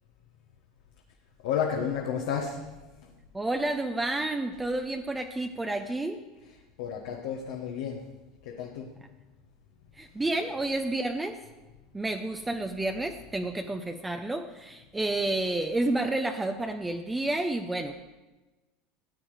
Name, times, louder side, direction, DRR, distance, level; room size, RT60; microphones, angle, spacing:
voice 1, 1.4-2.6 6.8-8.0 8.4-8.9, left 7 dB, 70° left, 0 dB, 1.3 m, -31 dB
voice 2, 3.3-6.2 10.0-11.4 11.9-18.0, right 2 dB, 15° right, 5 dB, 0.8 m, -30 dB
14.5 x 8.8 x 4.9 m, 1.2 s
hypercardioid pair, 75°, 0 cm